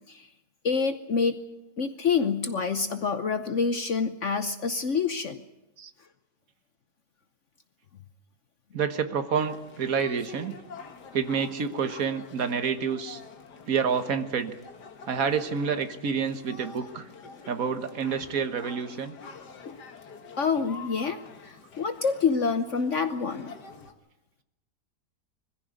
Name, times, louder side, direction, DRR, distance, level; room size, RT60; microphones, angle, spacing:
voice 1, 0.6-1.4 1.8-5.4 19.7-19.8 20.4-23.5, left 5 dB, 50° left, 10 dB, 1.1 m, -27 dB
voice 2, 8.7-10.6 11.1-13.2 13.7-14.5 15.1-17.1 17.5-19.2, right 6 dB, 55° right, 9 dB, 1.7 m, -28 dB
sound 1, 9.3-23.9, left 5 dB, 70° left, 2.1 m, -47 dB
21.5 x 15.5 x 9.5 m, 0.99 s
omnidirectional pair, 1.8 m